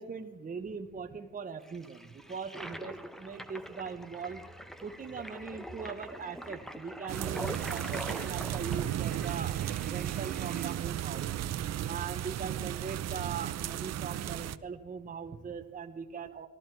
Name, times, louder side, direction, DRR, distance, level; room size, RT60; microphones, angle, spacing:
voice 1, 0.0-4.4 4.8-11.3 11.9-16.5, right 6 dB, 30° right, 6 dB, 0.8 m, -40 dB
Toilet flush, 1.6-10.7, equal, ahead, 0.9 m, -44 dB
sound 1, 7.1-14.6, right 11 dB, 60° right, 0.6 m, -34 dB
17.5 x 13.5 x 4.5 m, 1.3 s
cardioid pair, 90°, 30 cm